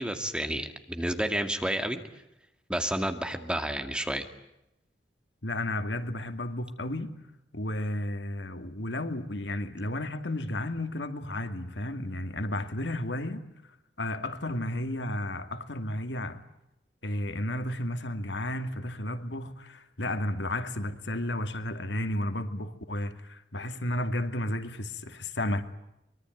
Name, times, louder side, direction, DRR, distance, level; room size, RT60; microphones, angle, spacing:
voice 1, 0.0-2.0 2.7-4.3, right 1 dB, 5° right, 2.2 m, -30 dB
voice 2, 5.4-13.5 14.0-16.4 17.0-25.6, left 1 dB, 85° left, 2.2 m, -33 dB
24.5 x 23.0 x 9.2 m
head